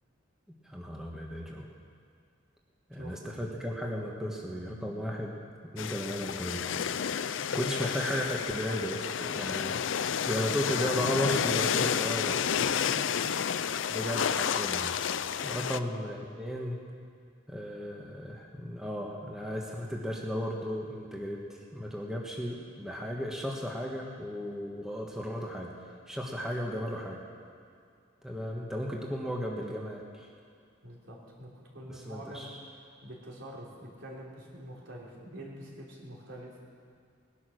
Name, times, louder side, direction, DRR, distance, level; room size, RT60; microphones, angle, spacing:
voice 1, 0.5-1.7 2.9-5.4 5.7-6.7 7.5-9.8 10.2-12.5 13.9-15.0 15.4-16.8 17.5-21.4 21.7-25.7 26.1-27.2 28.2-30.3 31.9-32.6, equal, 5° right, -2 dB, 1.4 m, -35 dB
sound 1, 5.8-15.8, left 8 dB, 65° left, 0.5 m, -30 dB
voice 2, 12.6-13.3 15.6-15.8 30.8-32.5 32.8-36.6, right 1 dB, 70° right, -4 dB, 3.4 m, -46 dB
19.0 x 11.0 x 6.4 m, 2.3 s
head